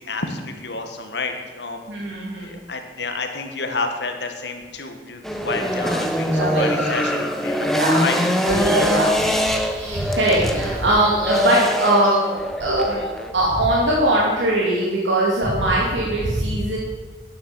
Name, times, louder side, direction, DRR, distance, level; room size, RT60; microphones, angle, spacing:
voice 1, 0.0-1.8 2.4-8.2, left 3 dB, 70° left, 5 dB, 1.8 m, -29 dB
voice 2, 1.9-2.5 6.3-7.0 7.8-8.0 8.5-9.1 9.7-12.3 12.6-13.0 13.3-16.8, right 1 dB, 85° right, -5 dB, 3.0 m, -20 dB
sound 1, 5.2-13.3, equal, ahead, 0.9 m, -23 dB
sound 2, 5.6-12.2, right 2 dB, 20° right, 4.3 m, -39 dB
11.5 x 10.5 x 7.2 m, 1.4 s
head